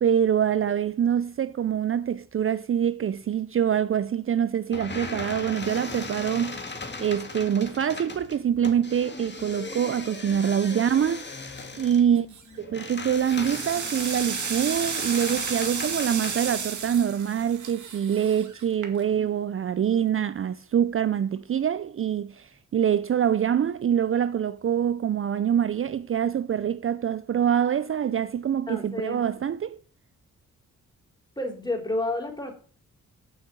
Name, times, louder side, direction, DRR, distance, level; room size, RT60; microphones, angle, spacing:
voice 1, 0.0-6.6 7.0-11.2 11.8-12.3 12.7-29.8, right 9 dB, 45° right, 0.5 m, -25 dB
sound 1, 4.7-16.5, left 3 dB, 35° left, 1.9 m, -38 dB
sound 2, 12.2-12.6 13.0-19.3, right 6 dB, 70° right, 2.1 m, -33 dB
voice 2, 28.7-29.2 31.4-32.5, left 2 dB, 15° left, 4.1 m, -31 dB
7.6 x 6.0 x 7.8 m
cardioid pair, 60°, 31 cm